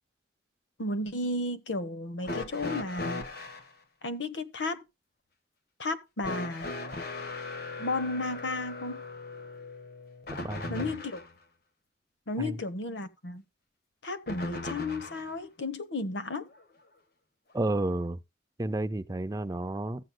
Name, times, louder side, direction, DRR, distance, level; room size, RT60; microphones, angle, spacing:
voice 1, 0.8-3.2 4.0-4.8 5.8-6.7 7.8-9.0 10.7-11.2 12.3-13.4 14.0-16.5, left 2 dB, 75° left, 1.0 m, -33 dB
sound 1, 2.2-3.7 6.2-11.3 14.3-15.3 16.5-16.6 17.7-17.8, left 3 dB, 55° left, 1.4 m, -38 dB
voice 2, 10.3-10.9 12.4-12.6 17.5-18.2 18.6-20.1, right 2 dB, 20° right, 0.4 m, -31 dB
14.5 x 7.8 x 2.2 m
head